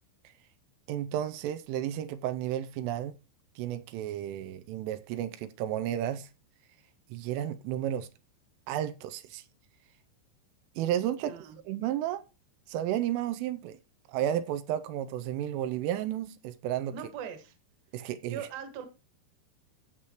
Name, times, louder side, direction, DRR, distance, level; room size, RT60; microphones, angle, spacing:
voice 1, 0.9-3.2 3.6-6.3 7.1-8.1 8.7-9.4 10.8-11.4 11.7-12.2 12.7-13.8 14.1-16.9 17.9-18.4, right 11 dB, 85° right, 3.2 m, -32 dB
voice 2, 11.2-11.6 16.9-17.6 18.3-18.9, right 8 dB, 60° right, 2.7 m, -40 dB
15.0 x 6.4 x 3.0 m
omnidirectional pair, 5.7 m